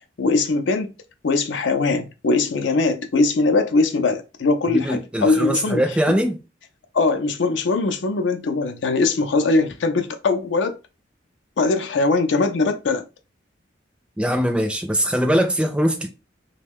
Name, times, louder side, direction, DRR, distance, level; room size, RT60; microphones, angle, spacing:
voice 1, 0.2-0.9 1.2-5.8 6.1-6.2 6.9-10.7 11.6-13.0, left 3 dB, 80° left, 0.5 m, -21 dB
voice 2, 4.7-6.4 14.2-16.1, equal, 5° right, 0.4 m, -21 dB
3.0 x 2.2 x 3.4 m
head